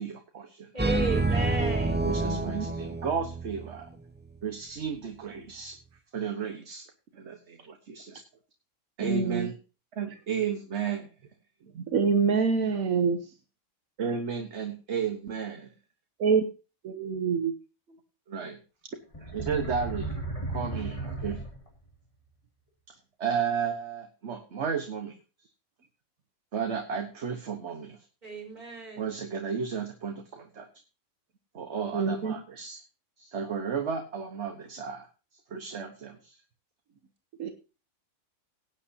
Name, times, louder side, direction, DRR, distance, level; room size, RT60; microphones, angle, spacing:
voice 1, 0.0-0.7 2.0-3.9 4.4-5.7 6.1-6.9 7.1-8.2 9.0-9.5 10.0-11.1 14.0-15.7 18.3-18.6 19.3-20.1 20.5-21.4 23.2-25.2 26.5-28.0 29.0-30.7 31.5-32.8 33.2-35.1 35.5-36.4, right 6 dB, 55° right, 5 dB, 1.4 m, -33 dB
voice 2, 0.7-2.0 28.2-29.1, right 2 dB, 30° right, -2 dB, 4.6 m, -34 dB
sound 1, 0.8-3.7, right 3 dB, 10° right, 0.5 m, -28 dB
voice 3, 2.3-2.7 9.0-9.5 11.7-13.2 16.2-16.5 16.8-17.5 31.9-32.4 37.4-37.5, right 5 dB, 75° right, 6 dB, 1.4 m, -26 dB
sound 2, 19.1-21.9, right 2 dB, 25° left, 2.5 m, -35 dB
18.0 x 8.9 x 2.8 m, 0.32 s
omnidirectional pair, 1.5 m